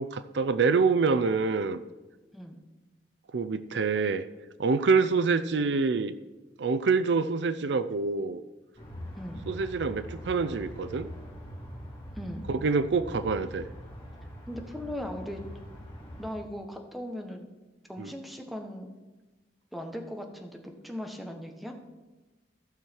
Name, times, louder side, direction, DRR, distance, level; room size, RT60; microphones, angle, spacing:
voice 1, 0.0-1.8 3.3-4.2 4.6-6.1 6.6-8.4 9.5-11.1 12.5-13.7 18.0-18.1, right 4 dB, 70° right, 12 dB, 0.5 m, -26 dB
sound 1, 8.8-16.3, equal, 35° left, 4.2 m, -43 dB
voice 2, 14.5-15.4 16.2-17.5 17.9-18.9 19.7-21.8, equal, ahead, 3 dB, 1.1 m, -38 dB
14.5 x 6.4 x 4.5 m, 1.2 s
head